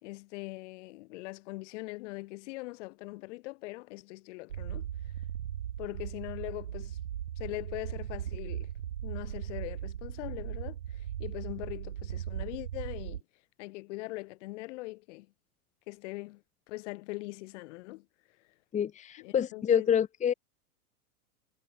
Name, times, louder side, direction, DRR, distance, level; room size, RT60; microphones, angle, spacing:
voice 1, 0.0-4.9 5.8-7.0 7.4-8.7 9.0-13.2 13.6-15.3 15.9-18.1 19.2-19.9, left 22 dB, 50° left, 4.5 m, -41 dB
sound 1, 4.5-13.2, right 10 dB, 85° right, 7.1 m, -38 dB
voice 2, 18.7-20.3, left 8 dB, 15° left, 1.5 m, -27 dB
hypercardioid pair, 140°, 45 cm